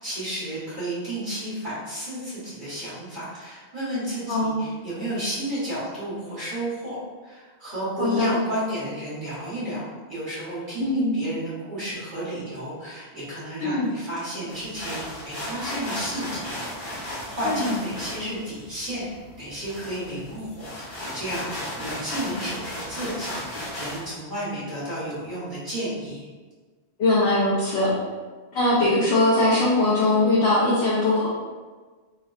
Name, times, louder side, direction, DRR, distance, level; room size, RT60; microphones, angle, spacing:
voice 1, 0.0-7.0 7.2-9.8 10.1-16.6 16.9-19.1 19.4-26.3, right 1 dB, 45° right, -11 dB, 1.4 m, -32 dB
voice 2, 4.3-4.6 8.0-8.4 10.8-11.2 13.6-13.9 17.4-17.7 27.0-27.9 28.5-31.3, left 2 dB, 75° left, -7 dB, 0.9 m, -21 dB
sound 1, 14.5-24.1, left 1 dB, 50° left, 1.0 m, -35 dB
3.5 x 2.2 x 2.3 m, 1.4 s
omnidirectional pair, 1.1 m